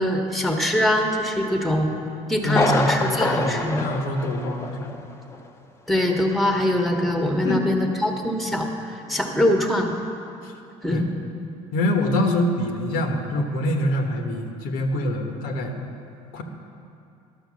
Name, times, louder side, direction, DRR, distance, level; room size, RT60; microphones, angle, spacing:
voice 1, 0.0-1.9 2.3-3.8 5.9-9.9 10.8-11.1, left 1 dB, ahead, 3 dB, 1.1 m, -23 dB
voice 2, 2.4-4.9 7.4-7.6 10.4-10.5 10.9-11.0 11.7-15.8 16.3-16.4, left 1 dB, 80° left, 3 dB, 1.2 m, -25 dB
Thunder, 2.5-5.0 5.3-5.4 6.0-6.1, left 2 dB, 15° left, 0.7 m, -26 dB
11.5 x 6.4 x 6.3 m, 2.6 s
cardioid pair, 105°, 15 cm